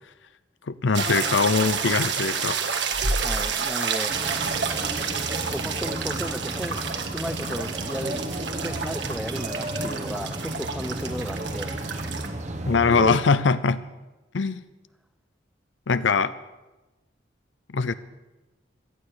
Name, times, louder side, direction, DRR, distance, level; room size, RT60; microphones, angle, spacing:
voice 1, 0.7-2.6 12.7-13.8 14.3-14.6 15.9-16.3 17.7-17.9, left 5 dB, 85° left, 14 dB, 0.6 m, -22 dB
sound 1, 0.9-12.3, right 5 dB, 70° right, 1.7 m, -29 dB
sound 2, 1.0-4.0, left 2 dB, 30° left, 1.8 m, -43 dB
voice 2, 3.2-4.1 5.5-6.8 7.1-8.2 8.5-11.8, equal, 5° right, 11 dB, 0.6 m, -34 dB
sound 3, 4.1-13.2, right 1 dB, 40° right, 1.1 m, -33 dB
18.0 x 12.0 x 6.6 m, 1.1 s
head